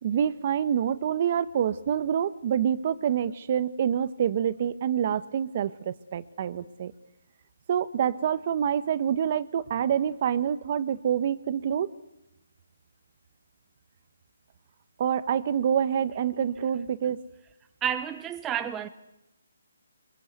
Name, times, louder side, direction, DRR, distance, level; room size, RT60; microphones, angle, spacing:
voice 1, 0.0-6.9 7.7-11.9 15.0-17.2, right 9 dB, 40° right, 1.2 m, -27 dB
voice 2, 17.8-18.9, right 9 dB, 10° right, 0.9 m, -30 dB
24.5 x 21.5 x 8.2 m
hypercardioid pair, 160°, 0 cm